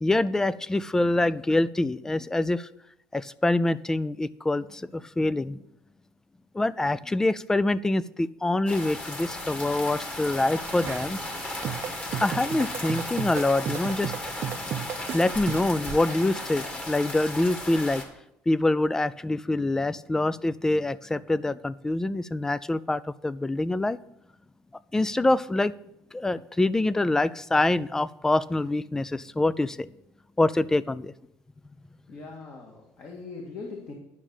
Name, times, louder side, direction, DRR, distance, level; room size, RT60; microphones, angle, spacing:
voice 1, 0.0-2.7 3.1-5.6 6.5-11.2 12.2-14.1 15.1-18.0 18.5-24.0 24.9-25.7 26.1-29.9 30.4-31.1, left 2 dB, 10° left, 19 dB, 0.4 m, -25 dB
sound 1, 8.7-18.0, left 2 dB, 25° left, 2.0 m, -35 dB
sound 2, 10.6-16.0, right 10 dB, 50° right, 0.6 m, -35 dB
voice 2, 32.1-33.9, left 4 dB, 40° left, 0 dB, 2.1 m, -41 dB
10.5 x 6.1 x 7.0 m, 0.80 s
cardioid pair, 130°, 6 cm